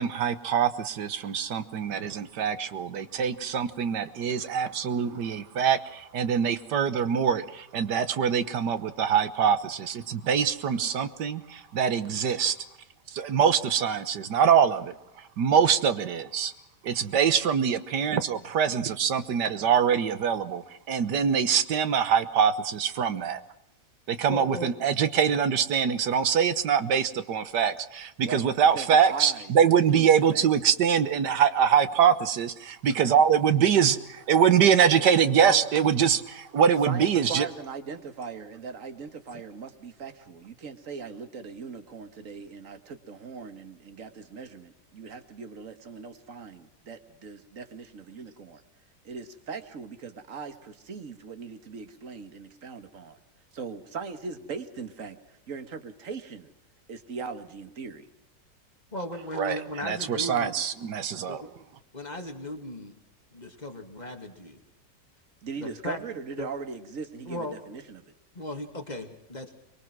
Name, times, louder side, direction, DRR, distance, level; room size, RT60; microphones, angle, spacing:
voice 1, 0.0-12.5 13.1-14.9 15.4-16.5 16.8-23.4 24.2-34.0 34.3-37.5 59.4-61.4, right 7 dB, 70° right, 12 dB, 1.7 m, -24 dB
voice 2, 24.3-24.7 35.3-35.6 58.9-60.5 61.3-61.5 61.9-62.9 63.3-64.6 65.5-66.0 66.4-66.5 67.3-67.6 68.3-69.5, left 1 dB, 25° left, 4 dB, 2.4 m, -36 dB
voice 3, 28.7-30.5 33.0-33.2 36.8-48.6 49.0-53.2 53.5-55.2 55.5-56.5 56.9-58.1 65.4-68.0, right 5 dB, 45° right, 9 dB, 1.9 m, -39 dB
24.5 x 22.5 x 6.1 m, 0.84 s
omnidirectional pair, 1.9 m